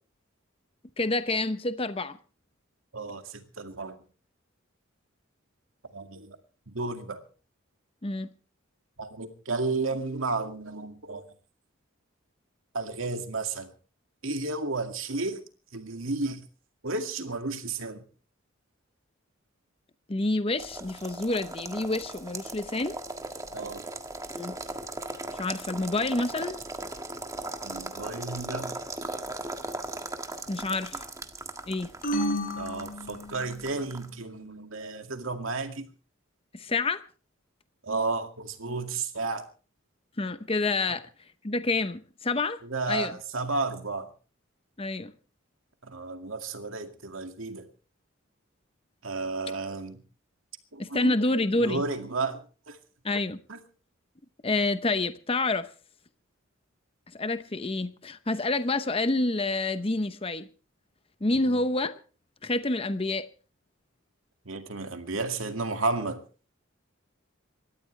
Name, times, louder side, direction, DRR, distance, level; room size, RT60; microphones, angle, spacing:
voice 1, 1.0-2.2 8.0-8.3 20.1-23.0 24.4-24.6 25.3-26.6 30.5-31.0 31.7-31.9 36.5-37.0 40.2-41.0 41.4-42.6 42.9-43.2 44.8-45.1 50.8-51.8 53.0-53.4 54.4-55.7 57.1-60.5 61.2-61.9 62.4-63.3, left 2 dB, 25° left, 0.8 m, -28 dB
voice 2, 2.9-4.0 5.9-6.4 6.7-7.2 9.0-11.2 12.7-13.7 14.2-15.4 15.7-16.4 16.8-18.0 23.5-23.8 27.6-28.8 32.6-35.8 37.8-39.4 42.7-44.1 45.9-47.7 49.0-50.0 50.7-51.1 51.6-52.4 52.7-52.8 53.5-53.6 61.5-61.6 64.5-66.2, right 3 dB, 75° right, 2.2 m, -32 dB
sound 1, 20.6-34.1, right 2 dB, 15° right, 1.5 m, -38 dB
sound 2, 32.0-33.7, equal, 45° left, 4.3 m, -31 dB
26.5 x 13.5 x 3.3 m
head